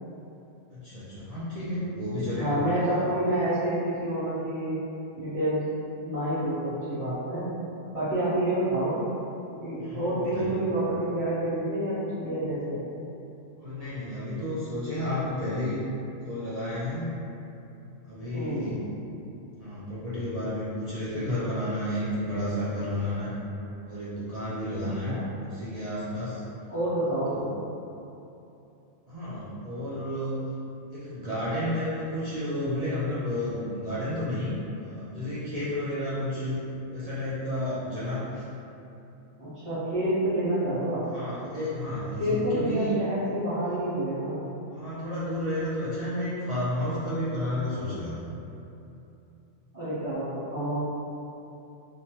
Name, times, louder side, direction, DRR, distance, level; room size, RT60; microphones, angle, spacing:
voice 1, 0.7-2.6 9.8-10.5 13.6-15.8 16.2-17.1 18.0-18.9 19.6-23.3 23.9-26.4 27.3-27.5 29.1-30.4 30.9-36.6 36.9-38.4 41.0-42.9 44.7-48.1, left 1 dB, 65° right, -11 dB, 0.3 m, -31 dB
voice 2, 2.4-4.8 5.1-5.7 6.0-7.5 7.9-9.0 9.6-12.8 18.3-18.8 25.0-25.2 26.7-27.5 39.4-41.1 42.2-44.4 49.7-50.8, right 1 dB, 30° right, -18 dB, 1.1 m, -28 dB
3.0 x 2.2 x 2.8 m, 2.8 s
omnidirectional pair, 1.3 m